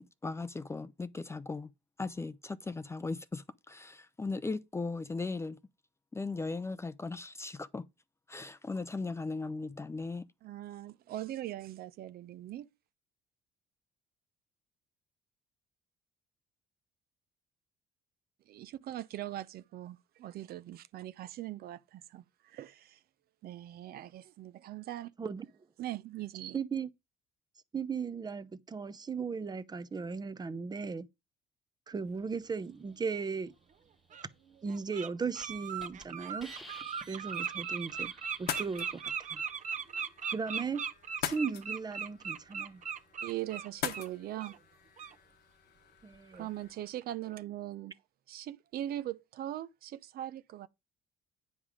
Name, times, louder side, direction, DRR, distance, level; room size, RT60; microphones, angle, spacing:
voice 1, 0.0-1.7 2.0-5.6 6.1-7.9 8.3-10.3, left 3 dB, 15° left, 0.5 m, -38 dB
voice 2, 10.4-12.7 18.5-23.0 23.4-25.1 25.8-26.6 43.2-44.5 46.3-47.9 48.3-50.7, right 13 dB, 65° right, 0.6 m, -41 dB
voice 3, 26.5-26.9 27.7-31.1 31.9-33.5 34.6-36.5 37.1-38.1 38.4-39.4 40.3-40.8 41.2-42.8 46.0-46.5, right 5 dB, 25° right, 0.7 m, -37 dB
Bird, 33.3-33.4 34.1-34.3 34.7-35.1 35.3-44.1 44.4-44.6 45.0-45.1, right 7 dB, 50° right, 1.0 m, -38 dB
Hiss, 34.8-35.0 35.4-35.5 35.8-36.0 36.4-39.0, equal, ahead, 1.2 m, -52 dB
sound 1, 38.3-46.7, left 10 dB, 70° left, 1.0 m, -44 dB
9.8 x 5.3 x 4.9 m
cardioid pair, 110°, 17 cm